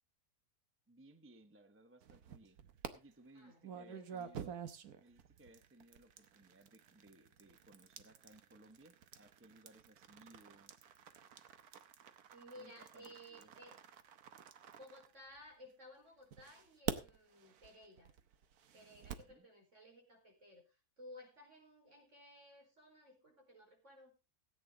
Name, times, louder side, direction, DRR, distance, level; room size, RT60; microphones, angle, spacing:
voice 1, 0.9-2.6 2.9-4.5 5.0-10.7 12.5-13.5 19.0-19.5, right 2 dB, 10° right, 8 dB, 0.7 m, -63 dB
sound 1, 2.0-2.9 3.6-15.7 16.3-19.4, right 8 dB, 75° right, 1.4 m, -49 dB
voice 2, 3.3-4.3 12.3-13.8 14.6-18.1 18.7-24.1, left 1 dB, 50° right, 1 dB, 5.2 m, -58 dB
17.0 x 8.9 x 3.9 m, 0.29 s
omnidirectional pair, 1.6 m